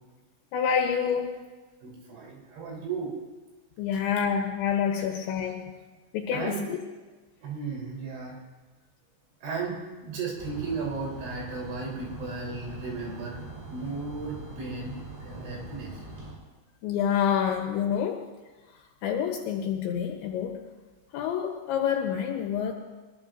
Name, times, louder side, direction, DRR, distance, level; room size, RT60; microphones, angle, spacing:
voice 1, 0.5-1.5 3.8-5.7 6.1-6.8 16.8-18.2 19.0-20.6 21.1-22.7, left 8 dB, 75° left, 2 dB, 3.1 m, -27 dB
voice 2, 1.8-3.1 5.0-5.1 6.3-6.6 7.4-8.4 9.4-13.4 13.7-15.0 15.2-16.0, right 4 dB, 70° right, -3 dB, 6.1 m, -35 dB
sound 1, 10.4-16.3, right 3 dB, 90° right, 10.0 m, -42 dB
23.5 x 20.5 x 2.6 m, 1.3 s
omnidirectional pair, 5.6 m